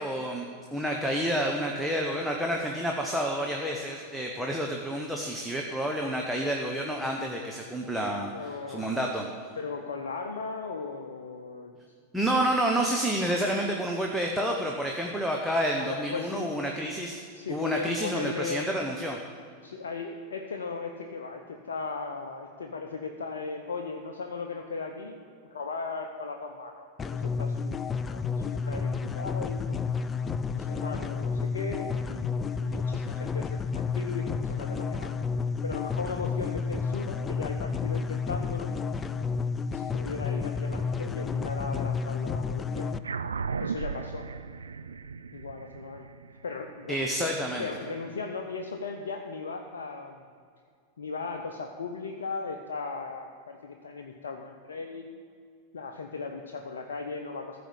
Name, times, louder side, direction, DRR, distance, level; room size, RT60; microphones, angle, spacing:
voice 1, 0.0-8.3 8.7-9.3 12.1-17.2 17.5-19.2 46.9-47.7, right 1 dB, ahead, -1 dB, 1.0 m, -29 dB
voice 2, 8.3-9.1 9.6-11.8 15.8-16.7 17.3-18.7 19.6-25.3 25.5-29.8 30.5-32.3 32.6-35.1 35.6-38.7 39.7-42.9 43.6-44.3 45.3-46.1 46.4-50.3 51.0-55.0 55.7-57.6, left 4 dB, 70° left, 3 dB, 0.7 m, -37 dB
sound 1, 27.0-43.0, left 5 dB, 20° left, 0.4 m, -31 dB
sound 2, 43.0-47.8, right 5 dB, 70° right, 0.4 m, -36 dB
14.0 x 5.1 x 8.2 m, 2.2 s
figure-of-eight pair, 90°, 0 cm